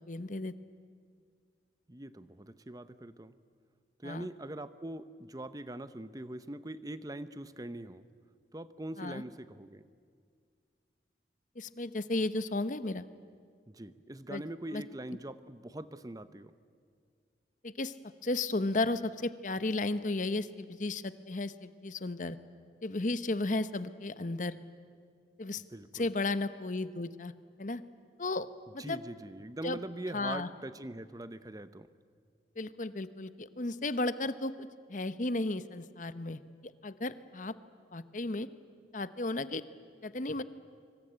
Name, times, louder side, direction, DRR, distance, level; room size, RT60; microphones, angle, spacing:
voice 1, 0.1-0.5 4.0-4.3 9.0-9.2 11.6-13.0 14.3-14.4 14.7-14.8 17.6-17.9 18.2-22.4 22.8-24.6 25.4-25.6 25.9-27.3 27.6-27.8 28.2-28.5 28.7-29.0 29.6-29.8 30.1-30.5 32.6-37.5 37.9-38.5 38.9-39.6 40.0-40.4, left 2 dB, 45° left, 13 dB, 0.9 m, -34 dB
voice 2, 1.9-3.3 4.0-8.1 8.5-9.8 13.7-16.5 25.7-26.1 28.8-31.9, right 1 dB, 20° right, 13 dB, 0.8 m, -42 dB
25.0 x 24.0 x 8.9 m, 2.1 s
head